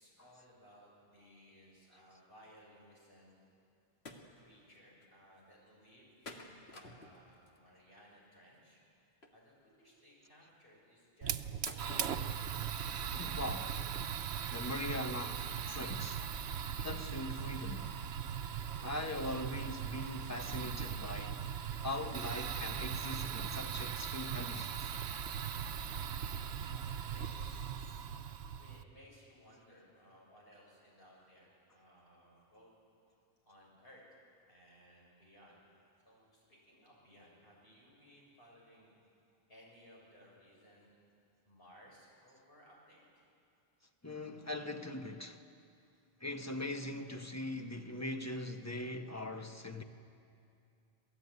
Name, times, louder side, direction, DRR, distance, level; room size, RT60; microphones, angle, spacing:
voice 1, 0.0-3.3 4.3-8.8 9.3-12.5 25.8-27.8 28.5-32.7 33.4-34.0 34.5-35.6 36.1-38.9 39.3-40.9 41.4-43.2, equal, 65° left, 7.2 m, -61 dB
sound 1, 4.1-4.3 4.7-4.8 5.0-5.1 6.2-7.6 9.2-9.3 11.7-12.4 12.7-12.8 13.4-13.5 14.0-14.1 14.4-14.5, left 2 dB, 80° left, 2.2 m, -50 dB
Fire, 11.2-28.8, right 8 dB, 85° right, 1.1 m, -39 dB
voice 2, 13.1-13.8 14.5-16.3 16.8-17.9 18.8-21.4 21.8-24.7 44.0-45.4 46.2-49.8, left 1 dB, 15° left, 1.2 m, -41 dB
27.0 x 17.5 x 9.7 m
omnidirectional pair, 1.1 m